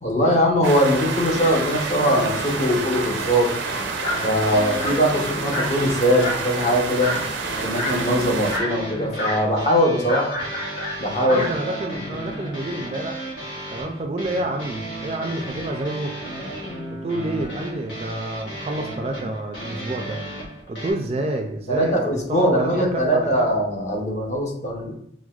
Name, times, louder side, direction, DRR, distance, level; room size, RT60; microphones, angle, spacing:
voice 1, 0.0-3.5 4.2-7.1 7.6-10.3 11.0-11.4 21.7-24.9, equal, 40° left, -1 dB, 0.8 m, -21 dB
sound 1, 0.6-8.6, right 4 dB, 90° right, 0.5 m, -29 dB
sound 2, 1.3-2.8 3.6-20.9, right 1 dB, 85° left, 1.0 m, -34 dB
Dog, 4.0-4.3 4.8-5.1 5.5-5.8 6.2-6.5 7.0-7.3 7.8-8.1 8.5-8.8 9.2-9.5 10.1-11.6, left 1 dB, 70° left, 1.3 m, -28 dB
voice 2, 11.2-13.2 13.7-16.2 16.9-20.2 20.7-23.5, right 2 dB, 35° right, 4 dB, 0.3 m, -29 dB
6.0 x 2.1 x 2.3 m, 0.68 s
head